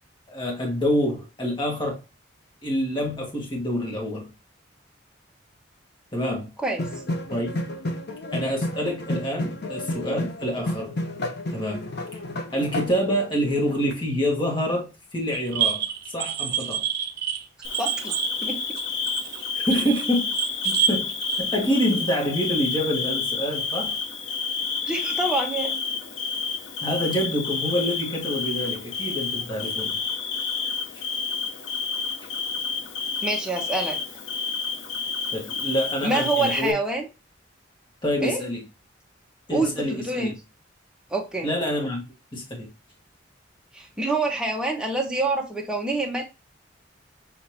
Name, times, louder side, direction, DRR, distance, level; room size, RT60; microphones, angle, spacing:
voice 1, 0.3-2.0 2.6-4.3 6.1-6.5 7.3-7.6 8.3-11.0 11.5-11.9 12.5-16.8 19.7-20.3 20.6-21.1 21.4-23.9 26.8-30.0 30.9-31.0 35.3-36.7 38.0-38.6 39.5-40.3 41.4-42.0 42.3-42.7, equal, 25° left, 1.5 m, -27 dB
sound 1, 6.8-14.0, left 1 dB, 55° left, 0.9 m, -31 dB
sound 2, 15.3-21.4, right 9 dB, 55° right, 0.6 m, -28 dB
Bird / Cricket, 17.6-36.7, left 5 dB, 85° left, 0.9 m, -30 dB
voice 2, 17.8-18.1 18.4-18.6 24.9-25.8 33.2-34.0 36.0-37.0 38.2-38.4 39.5-40.3 41.1-41.5 43.7-46.2, right 2 dB, 5° right, 1.1 m, -26 dB
6.5 x 2.9 x 2.8 m
head